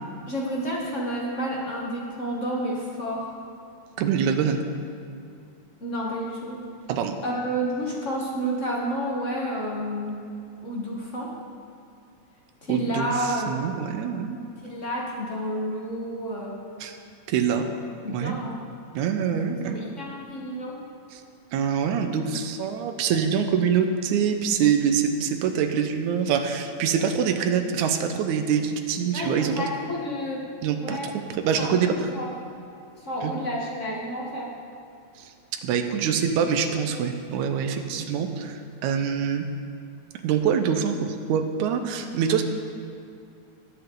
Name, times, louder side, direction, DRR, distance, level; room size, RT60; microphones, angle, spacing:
voice 1, 0.3-3.3 5.8-6.6 7.2-10.2 10.6-11.3 12.6-13.7 14.6-16.6 17.6-17.8 18.0-18.6 19.6-20.8 29.1-30.4 30.7-31.1 31.6-32.3 33.0-34.5, equal, 50° left, -3 dB, 0.8 m, -30 dB
voice 2, 4.0-4.7 6.9-7.2 12.7-14.5 16.8-17.0 17.3-17.7 18.1-18.3 19.0-19.8 21.1-21.2 21.5-29.6 30.6-31.9 33.2-33.3 35.2-35.3 35.6-39.5 40.2-42.4, right 7 dB, 80° right, 6 dB, 2.2 m, -25 dB
19.0 x 8.0 x 3.8 m, 2.5 s
omnidirectional pair, 3.5 m